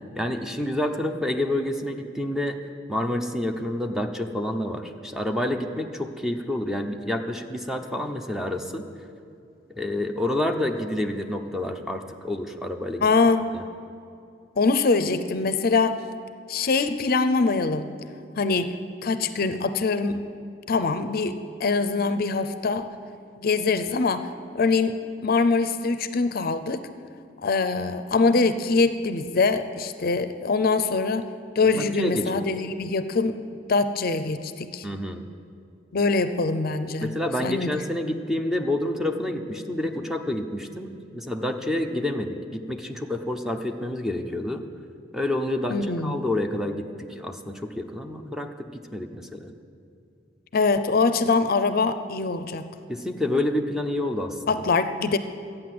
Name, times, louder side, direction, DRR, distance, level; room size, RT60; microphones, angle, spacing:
voice 1, 0.2-2.6 2.9-8.8 9.7-13.1 13.5-13.6 31.6-32.5 34.8-35.3 37.0-44.6 45.1-49.5 52.9-54.6, left 1 dB, ahead, 5 dB, 0.7 m, -28 dB
voice 2, 13.0-13.5 14.6-16.0 16.5-17.9 18.4-18.8 19.0-20.2 20.7-22.9 23.4-24.3 24.5-25.0 25.2-26.9 27.4-31.3 31.6-33.4 33.7-34.9 35.9-37.1 37.4-37.7 45.7-46.2 50.5-52.7 54.5-55.2, left 4 dB, 55° left, 11 dB, 0.5 m, -23 dB
13.0 x 8.9 x 7.7 m, 2.4 s
head